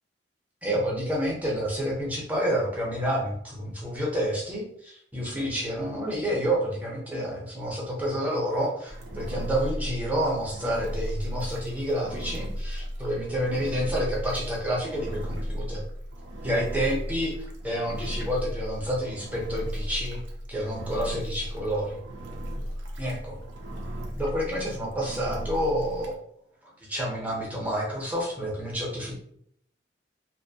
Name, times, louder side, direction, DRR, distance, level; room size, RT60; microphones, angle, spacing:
voice 1, 0.6-15.8 16.4-20.2 20.5-22.0 23.0-23.4 24.1-26.1 26.9-29.2, equal, 10° right, -4 dB, 0.6 m, -29 dB
Engine, 8.9-26.2, equal, 90° right, 0.5 m, -35 dB
2.6 x 2.1 x 2.7 m, 0.69 s
head